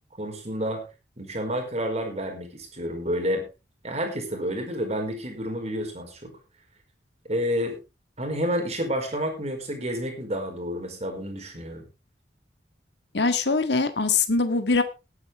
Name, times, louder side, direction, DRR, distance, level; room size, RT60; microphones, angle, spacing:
voice 1, 0.2-0.8 1.2-3.4 3.8-6.3 7.3-7.8 8.2-11.8, equal, 40° right, 3 dB, 4.7 m, -29 dB
voice 2, 13.1-14.8, left 4 dB, 75° left, 9 dB, 1.7 m, -22 dB
19.0 x 9.7 x 3.4 m, 0.29 s
head